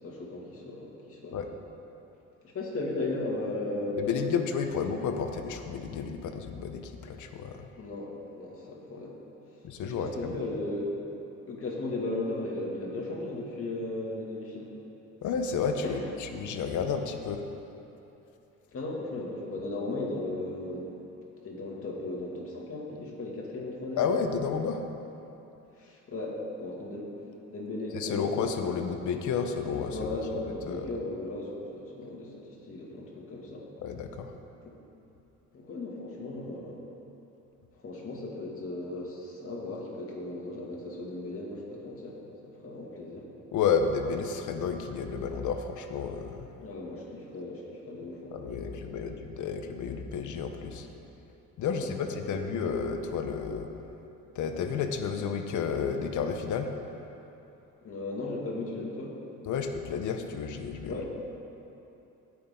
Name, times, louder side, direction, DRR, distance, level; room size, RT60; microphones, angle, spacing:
voice 1, 0.0-1.4 2.5-4.4 7.8-9.2 9.8-10.9 11.5-14.7 15.8-16.0 18.7-21.0 21.4-24.1 25.8-27.1 27.5-28.3 29.9-33.7 35.5-36.8 37.8-43.3 46.6-48.8 49.1-49.2 51.7-51.9 52.4-52.5 57.8-59.1 60.8-61.1, left 2 dB, 45° left, -3 dB, 2.4 m, -36 dB
voice 2, 4.0-7.7 9.6-10.3 15.2-16.0 16.3-17.5 24.0-24.8 27.9-30.1 30.7-30.9 33.8-34.3 43.5-46.5 48.3-50.9 51.6-53.7 54.3-56.7 59.4-61.0, left 6 dB, 75° left, 6 dB, 0.9 m, -31 dB
16.5 x 6.2 x 3.8 m, 2.9 s
cardioid pair, 90°, 30 cm